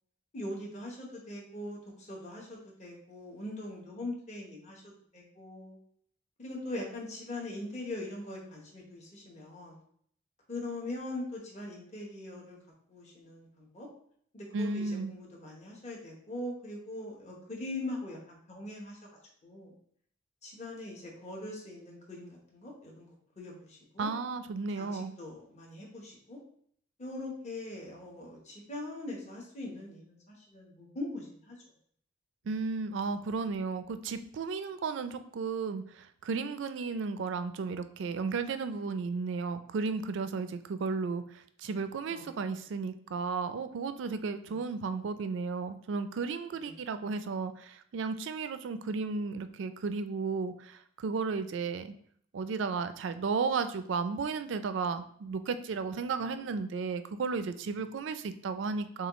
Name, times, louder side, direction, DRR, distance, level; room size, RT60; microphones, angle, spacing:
voice 1, 0.3-4.8 5.1-5.8 6.4-9.8 10.5-12.6 12.9-13.9 14.3-19.0 19.4-19.7 20.4-23.1 23.4-24.1 24.7-26.4 27.0-31.6 42.1-42.2 44.4-44.6 46.5-46.8, left 2 dB, 35° left, -2 dB, 0.9 m, -41 dB
voice 2, 14.5-15.1 24.0-25.1 32.5-51.9 52.3-59.1, right 4 dB, 65° right, 10 dB, 0.3 m, -34 dB
6.2 x 2.3 x 3.0 m, 0.63 s
head